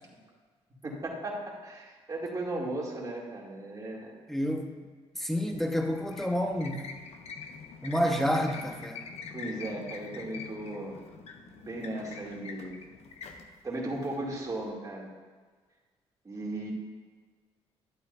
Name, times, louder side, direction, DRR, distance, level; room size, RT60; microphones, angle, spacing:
voice 1, 0.8-4.1 9.3-11.0 11.6-12.8 13.6-15.1 16.2-16.7, right 1 dB, 30° right, -3 dB, 2.6 m, -36 dB
voice 2, 4.3-4.7 5.1-6.8 7.8-9.1, equal, 5° left, 3 dB, 1.3 m, -29 dB
sound 1, 5.3-14.7, left 5 dB, 70° left, 1.0 m, -45 dB
12.0 x 8.7 x 2.7 m, 1.4 s
cardioid pair, 80°, 11 cm